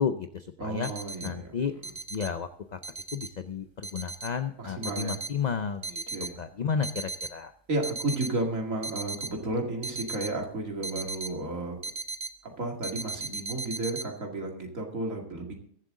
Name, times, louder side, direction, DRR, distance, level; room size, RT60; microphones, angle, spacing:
voice 1, 0.0-0.9 1.2-1.7 2.1-2.8 3.1-6.0 6.4-7.5, left 6 dB, 45° left, 9 dB, 0.5 m, -32 dB
voice 2, 0.6-1.5 4.6-5.2 5.8-6.4 7.7-11.8 12.4-15.5, right 2 dB, 80° right, 1 dB, 2.7 m, -33 dB
sound 1, 0.8-1.3 1.8-2.3 2.8-3.3 3.8-4.3 4.8-5.3 5.8-6.3 6.8-7.3 7.8-8.3 8.8-9.3 9.8-10.3 10.8-11.3 11.8-12.3 12.8-14.0, right 3 dB, 25° right, 0.7 m, -36 dB
22.5 x 7.7 x 3.8 m, 0.64 s
omnidirectional pair, 1.4 m